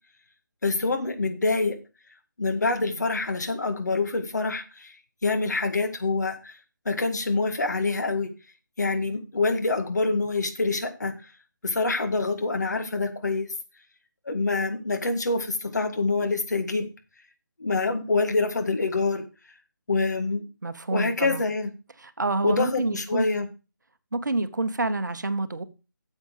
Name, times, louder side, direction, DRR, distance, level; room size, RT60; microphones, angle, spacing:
voice 1, 0.6-1.8 2.4-4.9 5.2-6.6 6.9-8.3 8.8-11.1 11.6-13.5 14.3-16.9 17.6-19.2 19.9-20.4 20.9-21.7 22.4-23.5, left 3 dB, 55° left, 1.9 m, -26 dB
voice 2, 20.6-21.4 22.0-23.3 24.1-25.6, right 2 dB, 60° right, 1.0 m, -28 dB
8.9 x 7.6 x 4.9 m
figure-of-eight pair, 150°, 11 cm